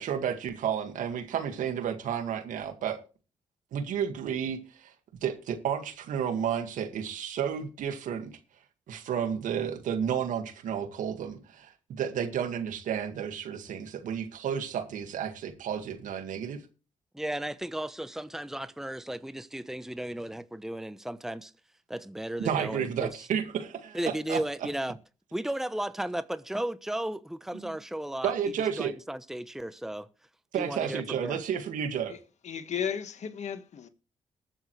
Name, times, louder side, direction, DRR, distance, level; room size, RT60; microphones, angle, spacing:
voice 1, 0.0-3.0 3.7-4.9 5.2-8.3 8.9-16.6 22.4-24.7 27.5-27.8 28.2-28.9 30.5-32.1, right 8 dB, 80° right, 2.0 m, -32 dB
voice 2, 17.1-21.5 21.9-23.1 23.9-25.0 25.3-28.3 28.8-30.1 30.6-31.4, right 1 dB, 5° right, 0.9 m, -34 dB
voice 3, 32.4-33.9, left 8 dB, 60° left, 1.5 m, -34 dB
20.5 x 7.3 x 3.2 m
supercardioid pair, 55°, 13 cm